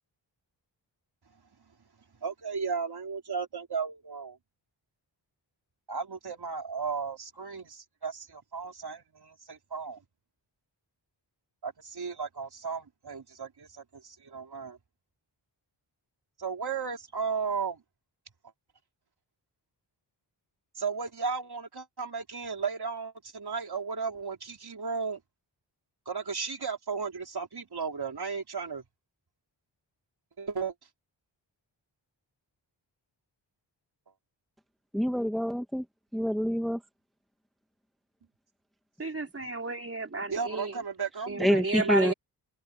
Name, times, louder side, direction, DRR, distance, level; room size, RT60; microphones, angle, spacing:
voice 1, 2.2-4.4 5.9-10.0 11.6-14.8 16.4-17.8 20.8-25.2 26.1-28.8 30.4-30.7 39.4-39.5 40.3-42.1, right 5 dB, 55° right, 4.0 m, -35 dB
voice 2, 34.9-35.8 36.1-36.8 41.4-42.1, equal, ahead, 1.2 m, -26 dB
voice 3, 39.0-40.8 41.3-42.1, right 2 dB, 30° right, 3.8 m, -32 dB
wide cardioid pair, 95°, 45 cm